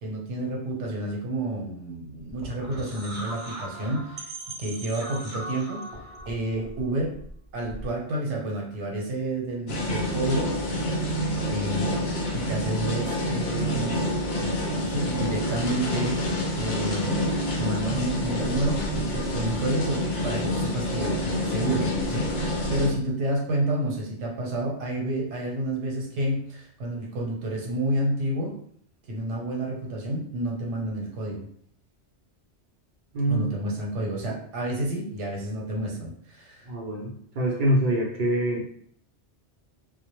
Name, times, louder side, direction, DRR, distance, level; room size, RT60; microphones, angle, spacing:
voice 1, 0.0-4.3 4.6-5.9 6.3-7.1 7.5-10.5 11.5-14.0 14.4-17.3 17.6-28.5 29.1-31.5 33.3-36.7, right 1 dB, 80° right, -1 dB, 1.0 m, -30 dB
sound 1, 2.2-8.0, right 1 dB, 25° right, 0.8 m, -39 dB
sound 2, 9.7-22.9, left 1 dB, 65° left, 0.8 m, -27 dB
voice 2, 33.1-33.5 36.7-38.6, right 1 dB, 60° right, -2 dB, 0.5 m, -25 dB
2.1 x 2.0 x 2.9 m, 0.64 s
omnidirectional pair, 1.2 m